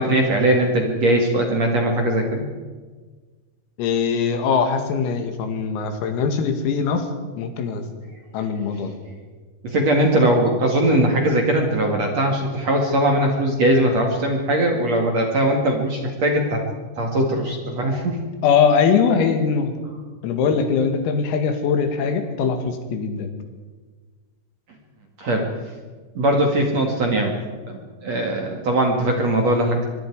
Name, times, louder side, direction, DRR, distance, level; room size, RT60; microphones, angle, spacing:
voice 1, 0.0-2.4 9.6-16.6 17.0-18.2 25.2-25.5 26.1-27.4 27.7-29.9, right 1 dB, 45° right, 2 dB, 2.5 m, -20 dB
voice 2, 3.8-7.1 7.4-7.9 8.3-9.0 18.4-19.7 20.2-23.3, left 6 dB, 85° left, 6 dB, 4.8 m, -21 dB
24.0 x 23.5 x 4.9 m, 1.4 s
omnidirectional pair, 5.9 m